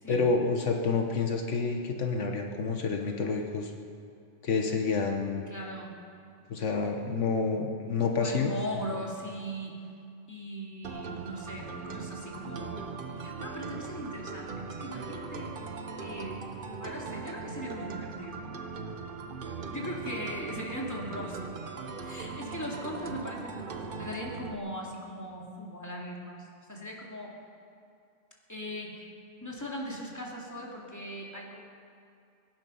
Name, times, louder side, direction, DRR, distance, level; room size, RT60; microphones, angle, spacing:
voice 1, 0.1-3.7 4.4-5.4 6.5-8.5, left 4 dB, 75° left, 3 dB, 1.5 m, -28 dB
voice 2, 5.5-6.0 8.2-9.8 10.3-12.9 13.2-14.5 14.8-15.5 16.0-16.4 16.8-18.5 19.5-21.4 22.0-27.3 28.5-29.1 29.4-31.6, equal, 15° left, -3 dB, 2.6 m, -39 dB
sound 1, 10.8-24.6, right 4 dB, 50° right, 1.1 m, -40 dB
23.0 x 11.0 x 5.6 m, 2.5 s
omnidirectional pair, 1.3 m